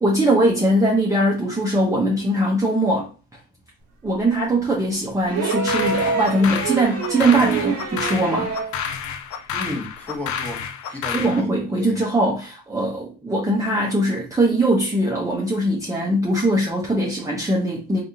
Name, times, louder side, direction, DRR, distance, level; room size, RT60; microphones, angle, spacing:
voice 1, 0.0-3.1 4.0-8.5 11.1-18.0, right 1 dB, 10° right, 0.7 m, -21 dB
sound 1, 5.3-8.8 10.1-10.2, right 4 dB, 50° right, 0.8 m, -26 dB
sound 2, 5.5-11.4, left 7 dB, 70° left, 0.5 m, -30 dB
voice 2, 9.5-12.0 13.2-13.3, left 2 dB, 5° left, 1.1 m, -33 dB
3.4 x 2.4 x 2.7 m
cardioid pair, 90°, 30 cm